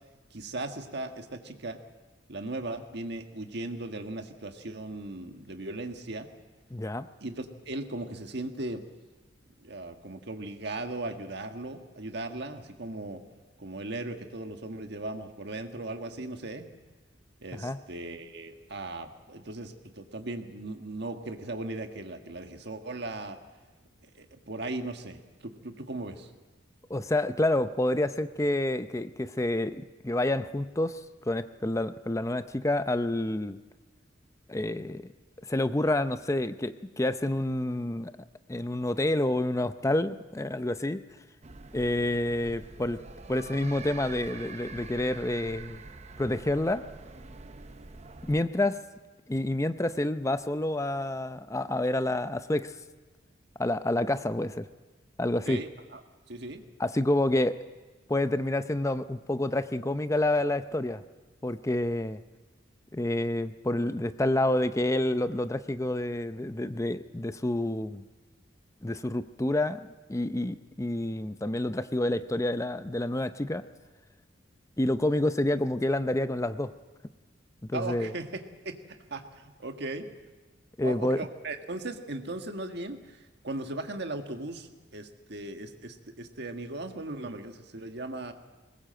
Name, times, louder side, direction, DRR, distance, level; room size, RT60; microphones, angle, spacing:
voice 1, 0.3-1.8 2.3-6.3 7.2-8.8 9.6-13.2 13.6-16.7 17.4-23.4 24.1-26.3 55.5-56.0 56.3-56.6 77.7-80.1 80.8-88.3, right 2 dB, 60° right, 5 dB, 1.6 m, -38 dB
voice 2, 6.7-7.1 17.5-17.8 26.9-33.6 34.5-35.0 35.5-38.1 38.5-41.0 41.7-43.0 43.3-45.8 46.2-46.8 48.3-48.8 49.3-52.7 53.6-54.7 55.2-55.6 56.8-57.6 58.1-61.0 61.4-62.2 62.9-68.0 68.8-73.6 74.8-76.7 77.7-78.1 80.8-81.2, left 1 dB, 15° left, 11 dB, 0.6 m, -28 dB
sound 1, 41.4-48.4, right 3 dB, 35° right, 0.8 m, -45 dB
22.0 x 19.5 x 7.7 m, 1.3 s
head